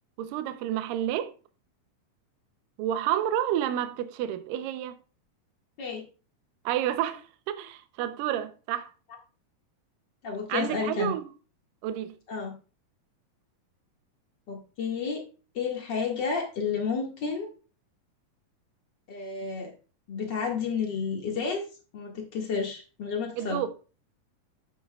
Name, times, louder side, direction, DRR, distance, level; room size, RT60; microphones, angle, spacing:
voice 1, 0.2-1.3 2.8-5.0 6.7-8.9 10.5-11.2 11.8-12.1 23.4-23.7, right 11 dB, 75° right, 2.3 m, -30 dB
voice 2, 10.2-11.1 12.3-12.5 14.5-15.2 15.5-17.5 19.1-19.7 20.1-21.6 21.9-23.6, left 5 dB, 40° left, 1.8 m, -31 dB
11.0 x 8.4 x 2.3 m
omnidirectional pair, 4.3 m